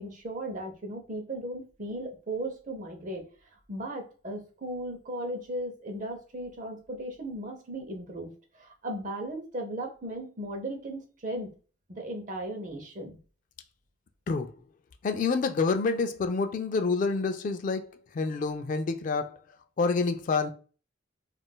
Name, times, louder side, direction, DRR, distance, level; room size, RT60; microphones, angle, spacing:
voice 1, 0.0-3.2 3.7-11.5 11.9-13.2, right 1 dB, 40° right, 0.7 m, -36 dB
voice 2, 15.0-19.4 19.8-20.5, left 4 dB, 40° left, 0.3 m, -28 dB
3.6 x 2.4 x 2.2 m
head